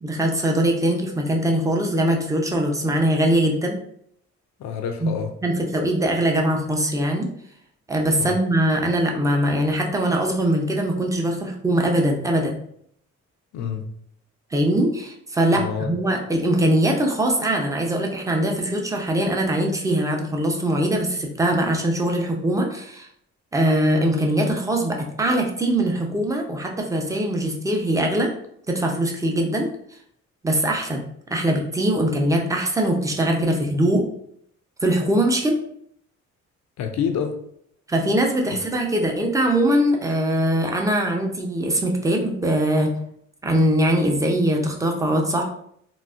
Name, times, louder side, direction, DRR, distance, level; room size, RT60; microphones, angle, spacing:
voice 1, 0.0-3.8 5.0-5.1 5.4-7.3 7.9-12.6 14.5-23.1 23.5-28.3 28.7-29.7 30.4-31.0 31.3-34.0 34.8-35.6 37.9-42.9 43.4-45.4, right 1 dB, 10° right, 0.5 m, -22 dB
voice 2, 4.6-5.3 8.2-8.4 13.5-13.9 15.5-15.9 36.8-37.4, left 7 dB, 65° left, 0.5 m, -27 dB
3.9 x 2.1 x 2.4 m
cardioid pair, 90°, 30 cm